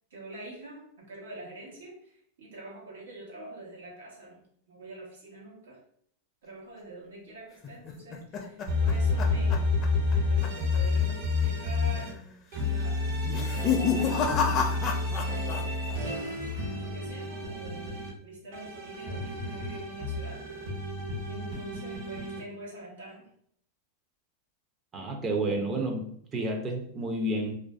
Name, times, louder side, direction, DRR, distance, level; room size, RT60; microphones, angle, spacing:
voice 1, 0.1-5.8 6.4-9.7 10.1-12.1 12.6-13.2 13.8-17.9 18.2-20.4 21.3-23.3, right 1 dB, 90° right, -4 dB, 1.1 m, -46 dB
sound 1, 7.6-10.2 10.4-10.8 11.1-11.2 11.9-12.3 13.2-15.6 15.9-16.5, left 6 dB, 35° left, 0.4 m, -30 dB
sound 2, 8.7-12.1 12.5-18.1 18.5-22.4, left 3 dB, 65° right, 1.2 m, -30 dB
voice 2, 24.9-26.0 26.3-27.5, right 1 dB, 25° right, 3 dB, 0.4 m, -30 dB
2.4 x 2.3 x 2.3 m, 0.66 s
supercardioid pair, 130°, 0 cm